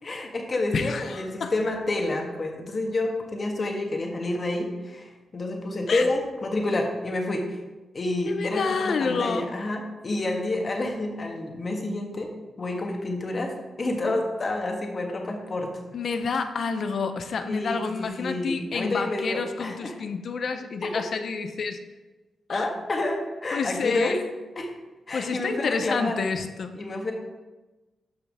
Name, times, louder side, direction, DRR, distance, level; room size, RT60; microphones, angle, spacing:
voice 1, 0.0-7.6 7.9-12.3 12.6-15.7 17.5-20.0 20.9-21.0 22.5-24.2 24.6-24.7 25.1-26.2 26.7-27.1, left 2 dB, 40° left, 2 dB, 1.5 m, -29 dB
voice 2, 0.7-1.5 5.9-6.1 8.3-9.5 15.9-21.8 22.5-22.7 23.5-24.2 25.1-26.7, left 5 dB, 60° left, 8 dB, 0.6 m, -29 dB
11.5 x 5.7 x 3.6 m, 1.2 s
cardioid pair, 110°, 0 cm